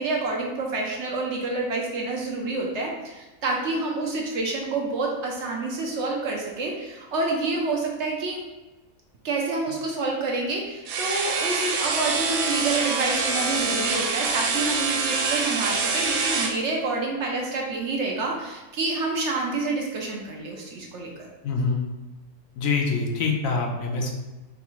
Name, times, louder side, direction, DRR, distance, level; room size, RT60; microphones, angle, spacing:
voice 1, 0.0-8.4 9.2-21.3, right 3 dB, 60° right, 0 dB, 0.8 m, -28 dB
sound 1, 10.9-16.6, right 4 dB, 85° right, 1.1 m, -25 dB
voice 2, 21.4-21.8 22.6-24.1, left 4 dB, 70° left, 1 dB, 1.0 m, -25 dB
4.1 x 3.4 x 3.0 m, 1.1 s
omnidirectional pair, 1.5 m